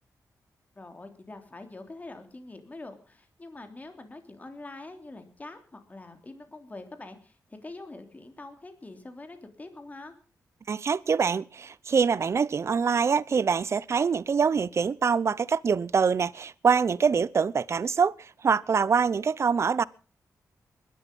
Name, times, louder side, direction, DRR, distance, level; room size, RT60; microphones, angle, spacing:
voice 1, 0.7-10.1, left 2 dB, 25° left, 3.2 m, -44 dB
voice 2, 10.7-19.8, right 6 dB, 45° right, 0.7 m, -24 dB
21.0 x 12.5 x 5.4 m
cardioid pair, 95°, 6 cm